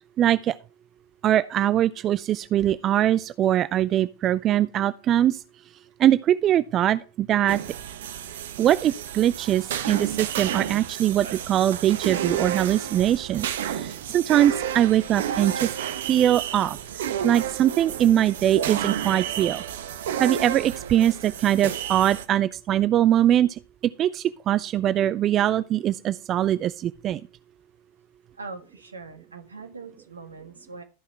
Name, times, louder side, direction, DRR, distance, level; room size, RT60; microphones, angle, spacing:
voice 1, 0.2-0.5 1.2-5.4 6.0-7.6 8.6-15.7 16.1-16.8 17.2-19.6 20.2-23.5 24.0-27.2, right 11 dB, 30° right, 0.4 m, -22 dB
sound 1, 7.5-22.3, right 9 dB, 60° right, 0.9 m, -31 dB
voice 2, 28.3-30.8, right 4 dB, 75° right, 1.6 m, -41 dB
13.5 x 5.6 x 4.5 m
figure-of-eight pair, 90°, 0 cm